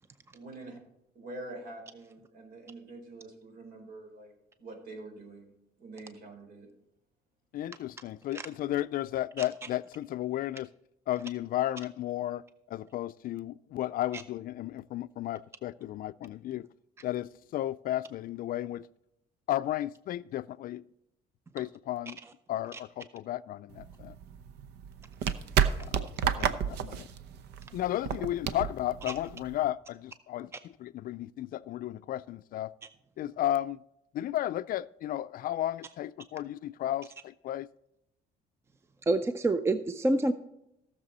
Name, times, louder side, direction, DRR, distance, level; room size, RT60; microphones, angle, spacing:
voice 1, 0.3-0.8 1.1-4.3 4.6-5.5 5.8-6.7, right 2 dB, 60° right, 4.2 m, -45 dB
voice 2, 7.5-10.7 11.1-16.7 17.0-18.9 19.5-20.8 21.5-22.2 22.5-24.2 25.8-27.1 27.7-32.7 33.2-33.8 34.1-37.7, left 13 dB, 60° left, 0.4 m, -34 dB
sound 1, 23.7-29.7, right 8 dB, 80° right, 0.8 m, -31 dB
voice 3, 39.1-40.3, right 2 dB, 15° right, 0.5 m, -27 dB
17.0 x 6.8 x 4.1 m
cardioid pair, 110°, 17 cm